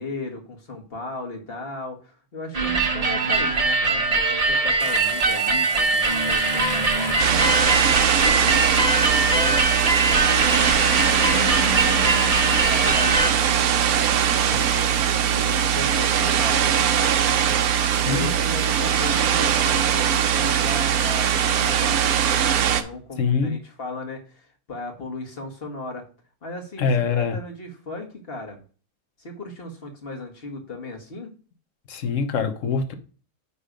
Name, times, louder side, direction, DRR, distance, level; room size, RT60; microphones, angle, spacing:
voice 1, 0.0-13.6 13.9-26.1 26.4-28.6 29.2-31.3, left 2 dB, 40° left, 1.7 m, -36 dB
sound 1, 2.5-13.3, right 3 dB, 30° right, 1.0 m, -22 dB
Water tap faucet, 4.8-22.8, left 8 dB, 90° left, 1.4 m, -39 dB
sound 2, 7.2-22.8, right 9 dB, 75° right, 1.2 m, -21 dB
voice 2, 23.2-23.5 26.8-27.4 31.9-32.9, left 5 dB, 60° left, 1.3 m, -23 dB
9.8 x 3.4 x 5.1 m
omnidirectional pair, 1.6 m